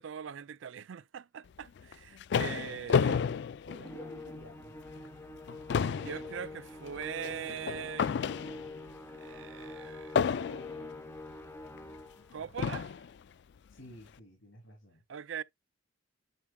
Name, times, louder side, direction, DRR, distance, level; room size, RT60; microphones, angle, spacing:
voice 1, 0.0-3.3 5.8-8.1 9.2-10.3 12.3-12.9 15.1-15.4, right 8 dB, 70° right, 0.4 m, -41 dB
sound 1, 1.8-4.4 4.9-5.1 5.4-8.9 10.2-10.9 11.8-11.9 12.6-13.1, left 6 dB, 60° left, 0.3 m, -31 dB
voice 2, 3.6-5.0 12.3-12.5 13.7-15.0, equal, 85° left, 2.9 m, -52 dB
Musical instrument, 3.8-12.3, left 2 dB, 15° left, 0.9 m, -46 dB
10.0 x 4.8 x 2.2 m
head